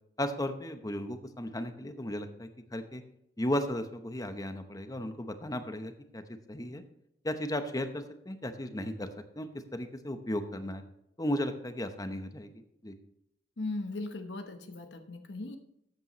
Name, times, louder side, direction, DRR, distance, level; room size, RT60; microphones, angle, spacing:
voice 1, 0.2-3.0 3.4-6.2 6.5-6.8 7.2-10.8 11.2-12.5 12.8-12.9, left 1 dB, 20° left, 8 dB, 0.9 m, -35 dB
voice 2, 13.6-15.6, left 2 dB, 75° left, 6 dB, 1.1 m, -38 dB
13.0 x 8.5 x 3.1 m, 0.78 s
head